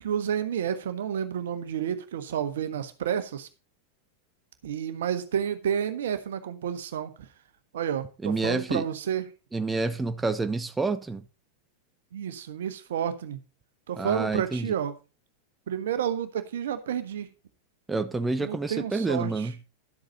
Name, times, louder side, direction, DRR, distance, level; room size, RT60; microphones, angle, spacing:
voice 1, 0.0-3.5 4.6-7.3 7.7-9.2 12.1-13.4 13.9-14.9 15.7-17.3 18.4-19.5, right 9 dB, 60° right, 1.4 m, -30 dB
voice 2, 8.2-8.8 9.5-11.2 14.0-14.7 17.9-19.5, right 3 dB, 10° right, 0.8 m, -28 dB
12.0 x 7.9 x 4.1 m
figure-of-eight pair, 90°, 0 cm